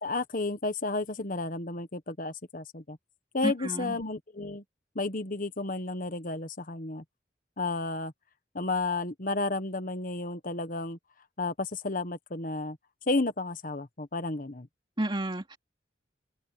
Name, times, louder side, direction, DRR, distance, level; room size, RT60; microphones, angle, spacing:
voice 1, 0.0-3.0 3.3-4.6 4.9-7.0 7.6-8.1 8.5-11.0 11.4-12.8 13.1-14.7, left 2 dB, 50° left, 1.4 m, -32 dB
voice 2, 3.4-4.0 15.0-15.6, right 1 dB, 30° right, 2.9 m, -31 dB
open air
head